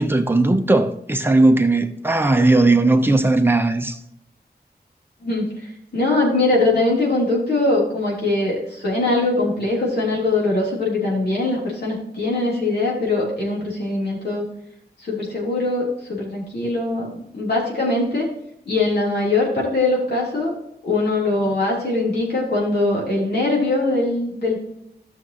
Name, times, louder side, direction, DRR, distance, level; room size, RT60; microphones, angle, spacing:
voice 1, 0.0-4.0, right 2 dB, 10° right, 0.9 m, -17 dB
voice 2, 5.2-14.5 15.0-18.3 18.7-20.5 20.8-24.6, left 2 dB, 70° left, 3.6 m, -22 dB
13.5 x 6.3 x 3.1 m
wide cardioid pair, 110°, 17 cm